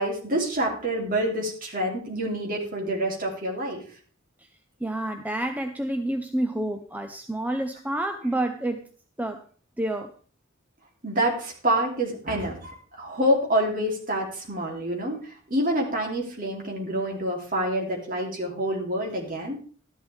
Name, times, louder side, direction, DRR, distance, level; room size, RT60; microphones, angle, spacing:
voice 1, 0.0-3.8 11.0-19.6, right 1 dB, 45° right, -1 dB, 3.4 m, -27 dB
voice 2, 4.8-8.9 9.2-9.4 9.8-10.1, right 1 dB, 10° right, 6 dB, 0.6 m, -29 dB
13.0 x 11.0 x 3.6 m, 0.41 s
head